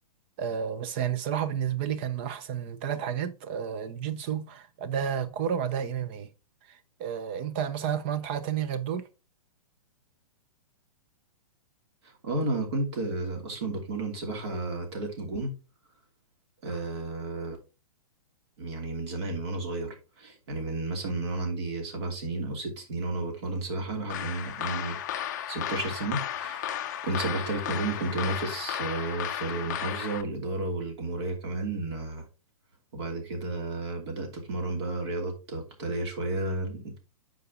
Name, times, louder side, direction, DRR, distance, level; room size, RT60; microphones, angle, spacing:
voice 1, 0.4-6.3 6.7-9.1, right 8 dB, 20° right, 0.4 m, -31 dB
voice 2, 12.2-15.5 16.6-17.6 18.6-32.2 32.9-37.0, right 2 dB, 50° right, 2.8 m, -32 dB
sound 1, 24.1-30.2, left 11 dB, 30° left, 0.5 m, -34 dB
8.4 x 5.1 x 3.7 m
hypercardioid pair, 175°, 18 cm